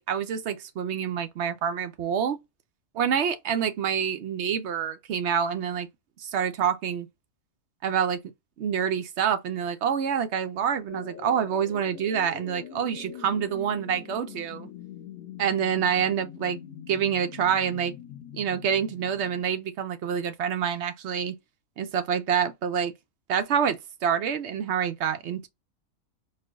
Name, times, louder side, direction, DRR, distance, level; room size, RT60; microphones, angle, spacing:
voice 1, 0.0-2.4 3.0-5.9 6.2-7.1 7.8-8.2 8.6-14.7 15.4-16.6 16.9-17.9 18.4-21.3 21.8-22.9 23.3-25.5, right 8 dB, 65° right, 0.8 m, -27 dB
sound 1, 10.9-19.4, left 9 dB, 75° left, 1.0 m, -43 dB
4.5 x 2.1 x 2.3 m
omnidirectional pair, 1.4 m